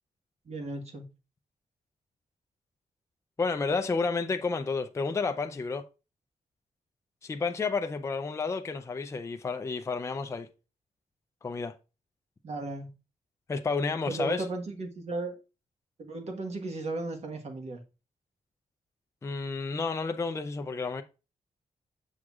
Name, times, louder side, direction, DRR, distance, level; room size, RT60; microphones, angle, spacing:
voice 1, 0.5-1.1 12.4-12.9 14.1-15.3 16.0-17.8, right 2 dB, 50° right, 1.4 m, -35 dB
voice 2, 3.4-5.8 7.2-10.5 11.4-11.7 13.5-14.5 19.2-21.0, left 4 dB, 20° left, 0.4 m, -31 dB
7.2 x 6.3 x 2.4 m
wide cardioid pair, 145°, 14 cm